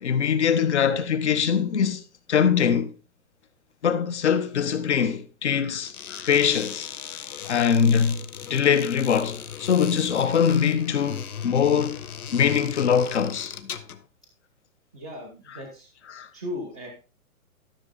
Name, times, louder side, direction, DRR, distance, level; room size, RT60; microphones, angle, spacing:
voice 1, 0.0-2.0 2.3-2.9 3.8-6.9 7.4-12.0 12.3-13.5 16.1-16.3, left 7 dB, 50° left, 1.3 m, -22 dB
sound 1, 5.8-14.1, left 8 dB, 80° left, 1.2 m, -38 dB
voice 2, 14.9-15.9 16.3-16.9, left 1 dB, 5° left, 0.5 m, -37 dB
13.0 x 6.6 x 4.0 m
hypercardioid pair, 175°, 43 cm